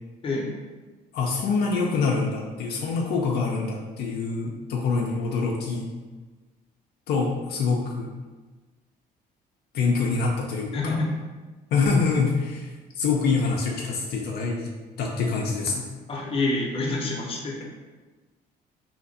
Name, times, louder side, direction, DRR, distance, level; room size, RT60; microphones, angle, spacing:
voice 1, 1.1-5.9 7.1-8.1 9.7-11.0 11.7-14.7 15.0-15.9, left 4 dB, 70° left, -1 dB, 0.5 m, -25 dB
voice 2, 10.7-11.1 16.1-17.6, left 2 dB, 35° left, -1 dB, 0.8 m, -27 dB
2.9 x 2.5 x 4.1 m, 1.3 s
cardioid pair, 110°, 17 cm